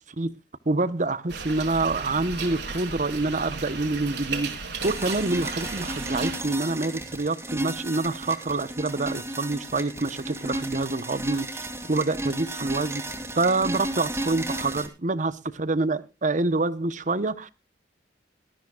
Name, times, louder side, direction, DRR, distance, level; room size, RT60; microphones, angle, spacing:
voice 1, 0.7-4.5 4.8-11.5 11.9-13.0 13.3-17.5, right 3 dB, 45° right, 0.9 m, -26 dB
sound 1, 1.3-6.4, right 4 dB, 70° right, 3.1 m, -35 dB
sound 2, 4.8-14.9, right 1 dB, 15° right, 2.4 m, -33 dB
19.0 x 13.5 x 2.3 m
head